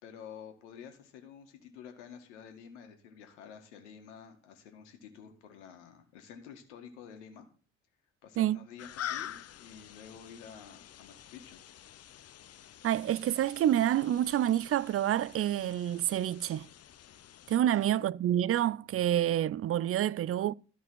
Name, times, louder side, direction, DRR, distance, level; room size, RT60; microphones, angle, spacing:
voice 1, 0.0-7.5 8.2-11.6 17.7-18.0, left 7 dB, 85° left, 2.0 m, -50 dB
sound 1, 8.8-17.6, left 11 dB, 45° left, 0.8 m, -46 dB
voice 2, 12.8-16.7 17.5-20.5, right 11 dB, 40° right, 0.5 m, -28 dB
13.5 x 5.4 x 7.8 m
hypercardioid pair, 55°, 34 cm